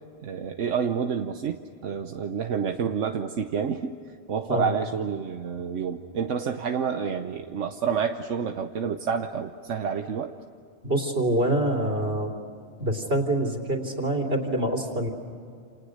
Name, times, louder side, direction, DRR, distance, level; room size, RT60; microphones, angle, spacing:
voice 1, 0.2-4.0 4.3-10.4, right 6 dB, 85° right, 6 dB, 1.3 m, -29 dB
voice 2, 10.8-12.3 12.8-15.1, right 1 dB, 55° right, 5 dB, 3.5 m, -25 dB
29.5 x 28.5 x 6.6 m, 2.4 s
omnidirectional pair, 1.2 m